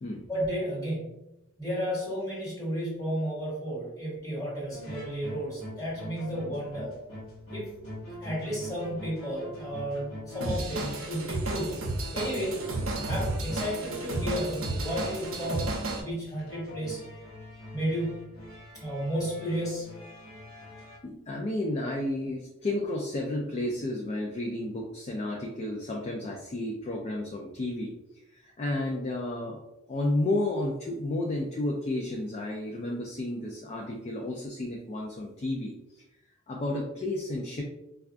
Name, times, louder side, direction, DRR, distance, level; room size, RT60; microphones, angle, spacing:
voice 1, 0.3-1.2 1.6-6.9 7.5-7.7 8.2-11.9 12.1-12.6 13.1-17.0 17.7-18.3 18.7-20.1, equal, 15° left, -5 dB, 1.2 m, -33 dB
sound 1, 4.7-21.0, left 1 dB, 80° left, 0.9 m, -43 dB
Drum kit / Drum, 10.4-16.0, right 2 dB, 70° right, 0.7 m, -33 dB
voice 2, 21.0-27.9 28.3-29.6 29.9-35.7 36.5-37.6, left 1 dB, 30° left, 0 dB, 0.4 m, -32 dB
4.4 x 2.3 x 2.4 m, 0.91 s
head